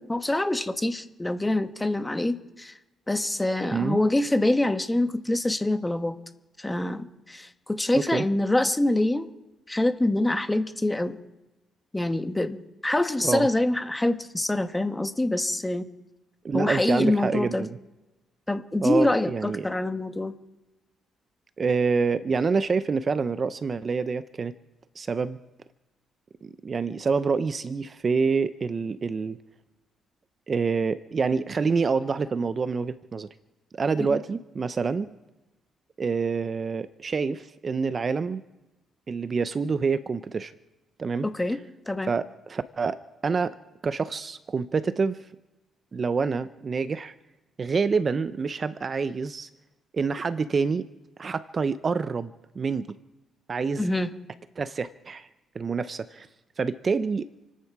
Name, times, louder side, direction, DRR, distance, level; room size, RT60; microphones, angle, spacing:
voice 1, 0.0-2.7 3.1-6.2 6.6-9.3 9.7-11.2 11.9-12.6 12.8-15.9 16.5-17.7 18.5-20.3 34.0-34.2 41.2-41.6 41.9-42.1 53.8-54.1, left 1 dB, 15° left, 8 dB, 1.3 m, -25 dB
voice 2, 7.9-8.2 13.2-13.5 16.4-17.8 18.8-19.7 21.6-24.5 25.0-25.4 26.4-29.4 30.5-33.3 33.7-35.2 36.0-38.4 39.1-40.5 41.0-41.6 42.1-43.6 43.8-45.2 45.9-47.1 47.6-49.5 49.9-50.9 51.2-52.3 52.6-53.0 53.5-53.8 54.6-55.3 55.5-56.3 56.6-57.3, right 5 dB, 40° right, 13 dB, 0.7 m, -27 dB
29.0 x 10.5 x 4.8 m, 1.0 s
cardioid pair, 90°, 0 cm